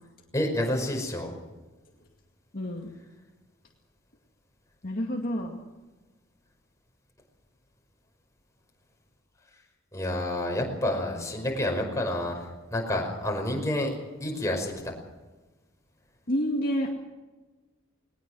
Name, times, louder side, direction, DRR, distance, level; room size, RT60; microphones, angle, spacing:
voice 1, 0.3-1.3 9.9-14.9, left 1 dB, 15° left, 1 dB, 5.4 m, -29 dB
voice 2, 2.5-2.9 4.8-5.6 16.3-16.9, equal, 45° left, 0 dB, 2.2 m, -29 dB
20.5 x 20.0 x 6.3 m, 1.2 s
head